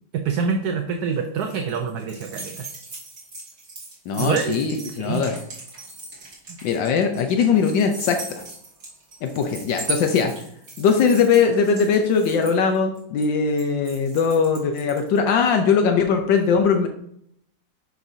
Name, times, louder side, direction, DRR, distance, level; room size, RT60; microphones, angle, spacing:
voice 1, 0.1-2.7 4.2-5.2 6.5-6.6, right 6 dB, 65° right, 5 dB, 1.1 m, -26 dB
sound 1, 0.9-15.2, right 3 dB, 45° right, 2.5 m, -38 dB
voice 2, 4.1-5.3 6.6-8.4 9.2-10.3 10.8-16.9, left 6 dB, 80° left, 5 dB, 1.4 m, -20 dB
9.7 x 5.9 x 2.7 m, 0.69 s
omnidirectional pair, 2.0 m